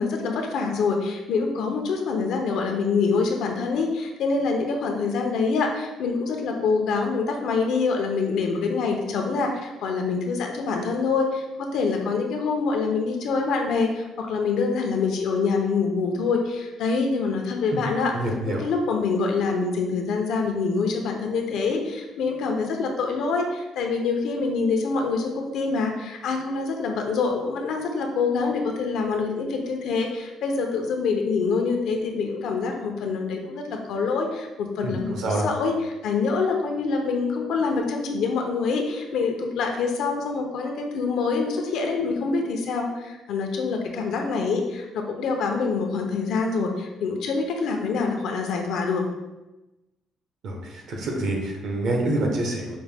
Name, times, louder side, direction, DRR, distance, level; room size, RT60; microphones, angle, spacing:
voice 1, 0.0-18.2 18.5-49.1, left 4 dB, 75° left, 3 dB, 0.6 m, -25 dB
voice 2, 18.1-18.6 34.8-35.5 50.4-52.8, right 1 dB, 65° right, 1 dB, 0.9 m, -27 dB
5.1 x 2.1 x 3.4 m, 1.0 s
cardioid pair, 130°, 0 cm